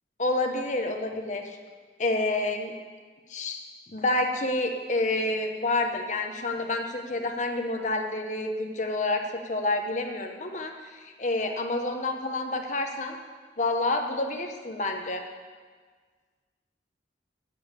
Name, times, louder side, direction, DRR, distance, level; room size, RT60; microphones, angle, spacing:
voice 1, 0.2-1.6 2.0-2.7 3.3-3.6 3.9-13.2 13.6-15.2, left 2 dB, 40° left, 4 dB, 0.9 m, -28 dB
7.6 x 7.2 x 8.0 m, 1.5 s
head